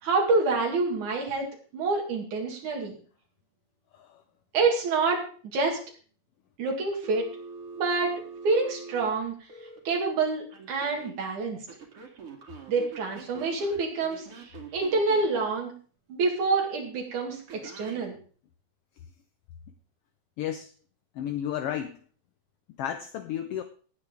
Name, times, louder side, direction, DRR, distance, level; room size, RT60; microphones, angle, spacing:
voice 1, 0.0-3.0 4.5-5.3 5.5-5.8 6.6-7.3 7.7-9.3 9.9-11.6 12.7-15.7 16.1-18.2, right 3 dB, 90° right, 0 dB, 3.7 m, -27 dB
Telephone, 7.0-9.8 10.5-11.1 11.7-15.4 17.5-18.0, right 5 dB, 50° right, 3.0 m, -44 dB
voice 2, 20.4-20.7 21.1-22.0 22.8-23.6, left 10 dB, 75° left, 9 dB, 1.4 m, -32 dB
18.0 x 8.8 x 3.7 m, 0.41 s
omnidirectional pair, 3.3 m